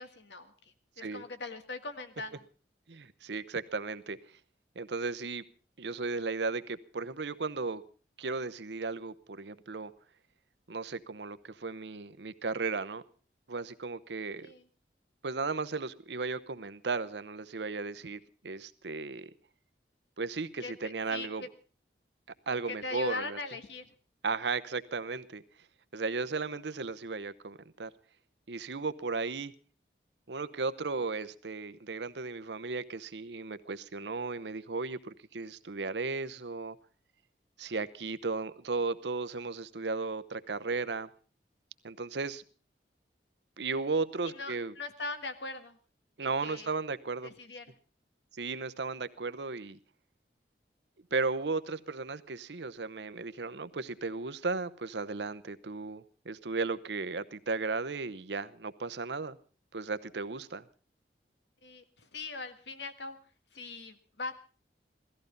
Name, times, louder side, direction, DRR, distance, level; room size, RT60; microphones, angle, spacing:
voice 1, 0.0-2.4 14.4-14.6 20.6-21.5 22.7-23.9 44.2-45.8 46.4-46.7 47.2-47.7 61.6-63.2 63.5-64.3, left 3 dB, 85° left, 9 dB, 1.7 m, -41 dB
voice 2, 2.9-4.2 4.8-5.4 5.8-7.8 8.2-9.9 10.7-13.0 13.5-14.5 15.2-19.3 20.2-21.4 22.5-23.4 24.2-25.4 25.9-27.9 28.5-29.5 30.3-36.8 37.6-41.1 41.8-42.4 43.6-44.7 46.2-47.3 48.3-49.8 51.1-59.4 59.7-60.6, right 4 dB, 80° right, 13 dB, 0.8 m, -35 dB
17.5 x 14.0 x 5.3 m, 0.38 s
head